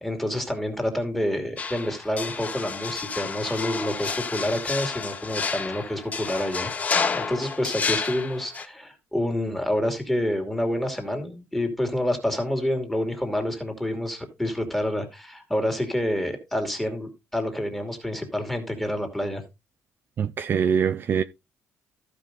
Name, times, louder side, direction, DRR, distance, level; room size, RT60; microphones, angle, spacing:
voice 1, 0.0-6.7 7.1-19.4, left 1 dB, 5° left, 2.6 m, -28 dB
sound 1, 1.6-8.7, left 5 dB, 25° left, 0.9 m, -30 dB
voice 2, 20.2-21.2, right 7 dB, 40° right, 0.6 m, -23 dB
14.5 x 5.3 x 3.8 m
cardioid pair, 160°, 5 cm